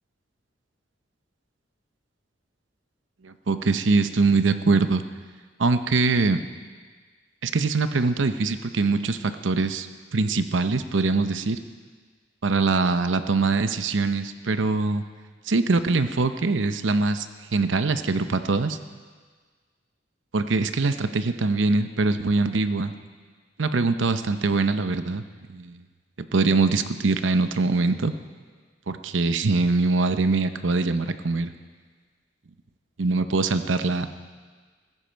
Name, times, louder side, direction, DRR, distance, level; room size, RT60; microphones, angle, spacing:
voice 1, 3.2-5.0 5.6-6.4 7.4-11.6 12.4-15.0 15.5-17.3 17.5-18.8 20.3-22.9 23.6-25.2 25.5-25.8 26.3-28.1 28.9-31.5 33.0-34.1, right 3 dB, 90° right, 10 dB, 0.8 m, -23 dB
15.5 x 15.0 x 4.6 m, 1.5 s
head